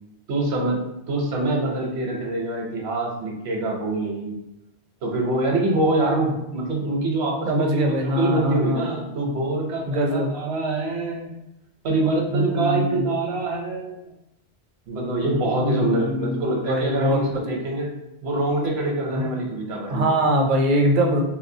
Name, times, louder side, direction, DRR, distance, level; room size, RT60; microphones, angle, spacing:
voice 1, 0.3-4.4 5.0-11.3 11.8-14.0 14.9-17.9 18.2-20.1, right 2 dB, 80° right, 0 dB, 1.0 m, -25 dB
voice 2, 7.5-8.9 9.9-10.3 12.3-13.0 15.2-17.6 19.1-19.2 19.9-21.2, equal, 60° right, 3 dB, 0.6 m, -23 dB
3.0 x 2.6 x 2.6 m, 0.88 s
omnidirectional pair, 1.1 m